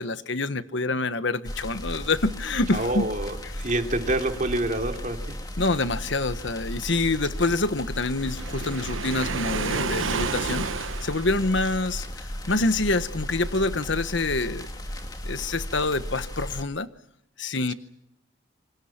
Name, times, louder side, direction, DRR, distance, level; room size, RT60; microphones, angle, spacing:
voice 1, 0.0-3.1 5.6-14.7 15.2-16.9 17.4-17.7, left 2 dB, 65° left, 12 dB, 1.3 m, -26 dB
sound 1, 1.4-16.6, equal, 20° left, 2.6 m, -35 dB
voice 2, 2.7-5.4, right 1 dB, 40° right, 4 dB, 3.1 m, -27 dB
Waves surf, 8.2-11.7, right 4 dB, 85° right, 1.2 m, -31 dB
28.5 x 25.5 x 6.0 m, 0.79 s
head